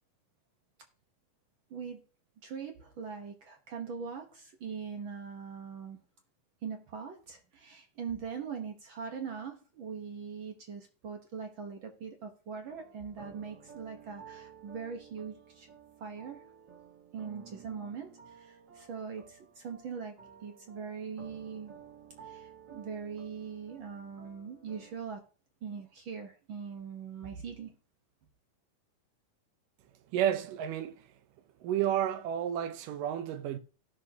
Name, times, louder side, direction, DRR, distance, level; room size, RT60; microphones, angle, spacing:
voice 1, 1.7-2.0 2.4-6.0 6.6-15.7 16.0-16.4 17.1-20.1 20.4-21.7 22.2-25.2 25.6-27.7, right 6 dB, 65° right, 1.2 m, -41 dB
sound 1, 12.7-25.0, right 7 dB, 40° right, 2.3 m, -53 dB
voice 2, 30.1-31.1 31.6-33.6, right 10 dB, 90° right, 2.5 m, -31 dB
16.5 x 6.2 x 2.8 m
omnidirectional pair, 3.7 m